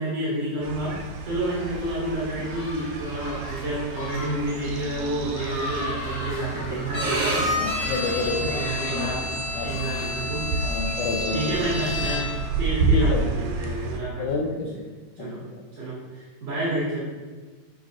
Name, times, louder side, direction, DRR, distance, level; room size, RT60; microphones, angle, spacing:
voice 1, 0.0-7.4 8.4-9.2 9.6-10.5 11.3-12.2 12.6-14.5 15.2-15.4 15.8-17.0, right 1 dB, 55° right, -9 dB, 3.1 m, -29 dB
sound 1, 0.6-14.0, right 3 dB, 90° right, 2.3 m, -31 dB
sound 2, 1.4-10.1, left 1 dB, 30° left, 2.7 m, -38 dB
Bowed string instrument, 6.9-12.5, left 1 dB, 30° right, 1.7 m, -29 dB
voice 2, 7.5-9.8 10.6-11.6 12.9-13.3 14.2-14.8 15.2-15.6, left 3 dB, 80° left, 3 dB, 2.3 m, -30 dB
11.5 x 5.8 x 2.6 m, 1.4 s
omnidirectional pair, 3.5 m